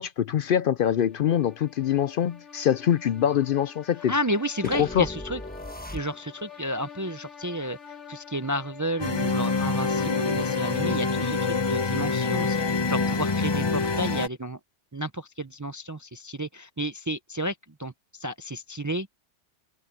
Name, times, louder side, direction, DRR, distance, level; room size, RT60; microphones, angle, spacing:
voice 1, 0.0-4.1 4.7-5.1, left 9 dB, 60° left, 0.6 m, -24 dB
sound 1, 0.9-11.9, left 8 dB, 90° left, 3.4 m, -47 dB
voice 2, 4.1-5.4 5.9-7.8 8.1-14.6 14.9-17.5 17.8-17.9 18.2-19.1, equal, 25° right, 0.4 m, -31 dB
sound 2, 4.6-6.5, left 1 dB, 10° left, 1.2 m, -39 dB
sound 3, 9.0-14.3, left 4 dB, 25° left, 0.8 m, -26 dB
omnidirectional pair, 1.2 m